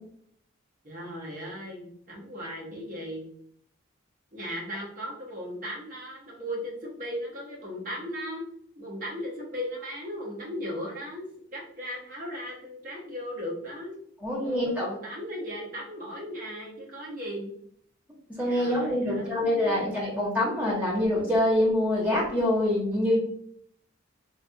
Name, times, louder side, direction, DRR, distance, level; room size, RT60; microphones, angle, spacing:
voice 1, 0.8-3.3 4.3-8.4 8.8-13.9 14.4-17.5 18.4-19.9, equal, 40° right, -3 dB, 0.8 m, -37 dB
voice 2, 14.2-14.9 18.4-23.2, left 1 dB, 10° right, -5 dB, 0.9 m, -25 dB
3.2 x 2.3 x 2.6 m, 0.66 s
head